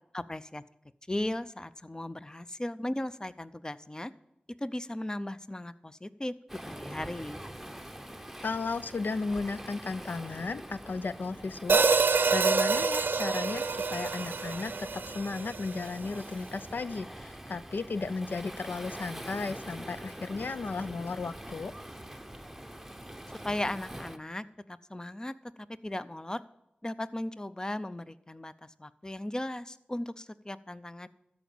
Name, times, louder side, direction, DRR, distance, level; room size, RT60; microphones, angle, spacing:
voice 1, 0.1-0.6 1.1-4.1 4.6-6.3 6.7-7.4 23.4-25.3 25.8-26.4 26.8-28.5 28.8-31.1, left 1 dB, 20° left, 15 dB, 0.5 m, -36 dB
Waves surf, 6.5-24.2, right 1 dB, 5° right, 0.9 m, -44 dB
voice 2, 8.4-21.7, left 4 dB, 75° left, 14 dB, 0.4 m, -35 dB
Hi-hat, 11.7-15.9, right 4 dB, 80° right, 0.6 m, -27 dB
13.0 x 5.1 x 7.1 m, 0.88 s
cardioid pair, 50°, 3 cm